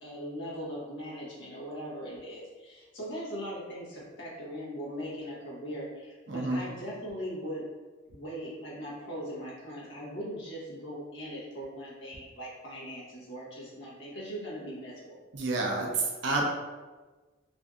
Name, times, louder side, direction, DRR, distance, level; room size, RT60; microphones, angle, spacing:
voice 1, 0.0-7.6 8.1-15.2, equal, 60° left, -6 dB, 0.9 m, -40 dB
voice 2, 6.3-6.6 15.3-16.4, right 3 dB, 60° right, 0 dB, 0.5 m, -29 dB
2.6 x 2.5 x 2.3 m, 1.3 s
head